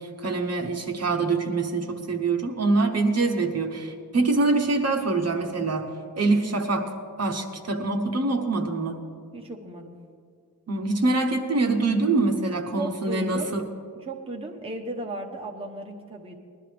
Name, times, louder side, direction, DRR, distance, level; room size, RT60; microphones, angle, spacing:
voice 1, 0.2-5.9 6.2-6.9 7.2-9.0 10.7-13.6, right 3 dB, 40° right, 4 dB, 1.0 m, -24 dB
voice 2, 9.3-9.9 12.7-13.6 13.9-16.4, right 2 dB, 15° right, 1 dB, 0.9 m, -35 dB
20.0 x 12.0 x 3.4 m, 2.2 s
wide cardioid pair, 155°, 37 cm